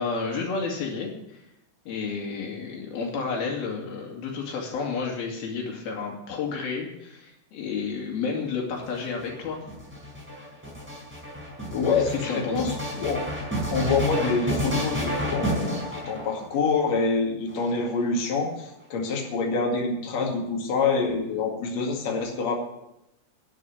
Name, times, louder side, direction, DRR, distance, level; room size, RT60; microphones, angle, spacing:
voice 1, 0.0-1.4 1.9-9.6 12.0-12.7, left 5 dB, 85° left, 0 dB, 4.3 m, -31 dB
sound 1, 8.7-16.7 17.5-18.3, equal, 5° right, 4.1 m, -30 dB
voice 2, 11.7-13.2 13.7-22.6, left 4 dB, 50° left, -1 dB, 3.3 m, -26 dB
11.5 x 7.6 x 9.9 m, 0.85 s
omnidirectional pair, 4.2 m